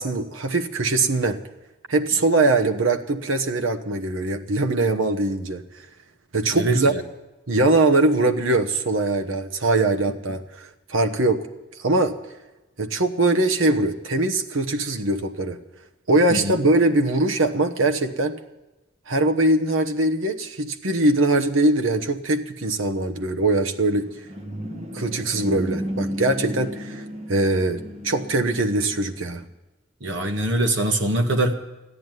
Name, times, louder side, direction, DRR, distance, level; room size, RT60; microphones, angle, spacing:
voice 1, 0.0-1.4 1.9-5.6 6.3-6.9 7.5-11.4 11.8-12.1 12.8-15.6 16.1-18.3 19.1-24.1 24.9-27.0 27.3-29.4, right 2 dB, 85° right, 6 dB, 1.1 m, -22 dB
voice 2, 6.5-7.0 16.3-16.6 30.0-31.5, right 1 dB, 65° right, 5 dB, 1.6 m, -23 dB
sound 1, 23.9-29.5, equal, 30° right, 1.3 m, -34 dB
14.0 x 10.0 x 9.2 m, 1.0 s
head